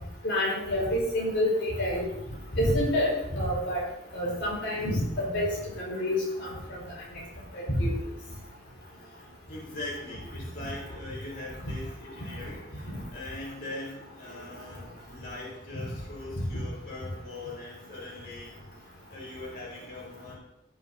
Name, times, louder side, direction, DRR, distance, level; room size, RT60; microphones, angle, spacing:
voice 1, 0.2-2.1 2.5-3.8 4.1-5.5 5.8-6.5 7.8-7.9, left 1 dB, 90° left, -4 dB, 4.4 m, -27 dB
voice 2, 9.5-18.5 19.1-20.3, left 2 dB, 55° left, -5 dB, 4.0 m, -41 dB
16.0 x 7.8 x 2.7 m, 0.88 s
head